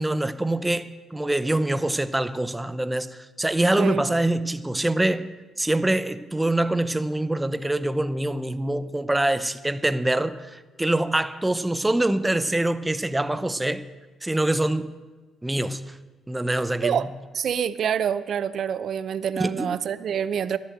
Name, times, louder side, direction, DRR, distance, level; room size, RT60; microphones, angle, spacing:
voice 1, 0.0-5.3 5.6-13.8 14.2-14.9 15.4-16.0 16.3-17.0 19.4-19.8, right 1 dB, 10° right, 0.7 m, -25 dB
voice 2, 17.3-20.6, right 8 dB, 60° right, 0.6 m, -26 dB
11.5 x 11.5 x 7.9 m
cardioid pair, 90°, 0 cm